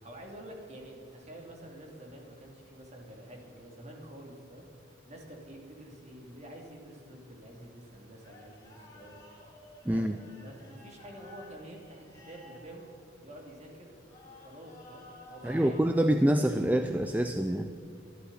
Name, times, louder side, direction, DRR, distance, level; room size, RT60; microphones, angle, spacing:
voice 1, 0.0-4.7 5.0-9.2 9.8-12.9 13.2-13.9 14.3-16.5, right 1 dB, 35° right, 0 dB, 2.8 m, -48 dB
sound 1, 6.2-15.9, left 1 dB, 20° left, 4.0 m, -55 dB
voice 2, 15.4-17.7, right 1 dB, 10° right, 7 dB, 0.4 m, -26 dB
25.5 x 11.5 x 4.2 m, 2.6 s
head